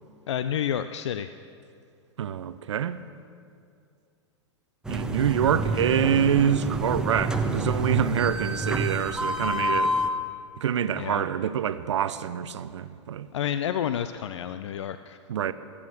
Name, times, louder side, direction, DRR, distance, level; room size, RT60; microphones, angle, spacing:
voice 1, 0.3-1.3 11.0-11.2 13.3-15.2, left 9 dB, 70° left, 0.5 m, -29 dB
voice 2, 2.2-3.0 4.9-10.0 10.6-13.3 15.3-15.5, right 9 dB, 75° right, 0.6 m, -26 dB
sound 1, 4.8-10.1, right 1 dB, 5° right, 1.0 m, -28 dB
21.0 x 8.7 x 6.5 m
hypercardioid pair, 105°, 15 cm